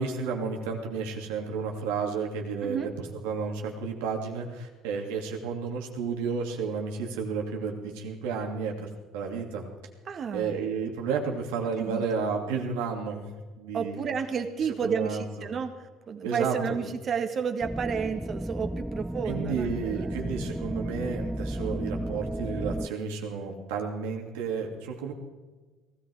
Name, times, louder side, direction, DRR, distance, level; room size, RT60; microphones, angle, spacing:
voice 1, 0.0-8.9 9.1-9.7 10.3-13.2 13.6-14.0 14.8-15.5 16.2-16.8 19.2-25.1, right 5 dB, 90° right, 1 dB, 2.8 m, -32 dB
voice 2, 10.1-10.6 11.8-12.0 13.7-20.1, right 6 dB, 45° right, 6 dB, 1.8 m, -31 dB
sound 1, 17.6-22.9, right 1 dB, 5° right, 0.4 m, -33 dB
18.5 x 14.5 x 4.9 m, 1.3 s
supercardioid pair, 85°, 0 cm